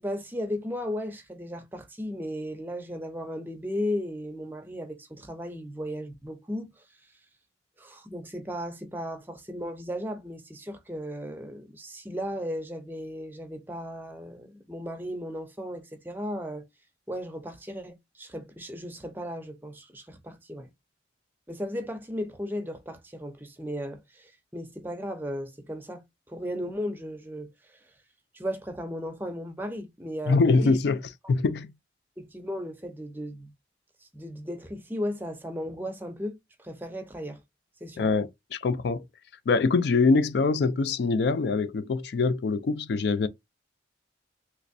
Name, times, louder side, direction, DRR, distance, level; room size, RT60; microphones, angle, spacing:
voice 1, 0.0-6.7 7.8-16.7 17.1-20.7 21.5-27.5 28.3-30.8 32.2-33.5 34.1-37.4 37.8-38.0, equal, 10° right, 0.6 m, -35 dB
voice 2, 30.3-31.0 31.3-31.7 38.0-39.0 39.5-43.3, left 4 dB, 65° left, 0.4 m, -24 dB
3.3 x 3.1 x 2.6 m
head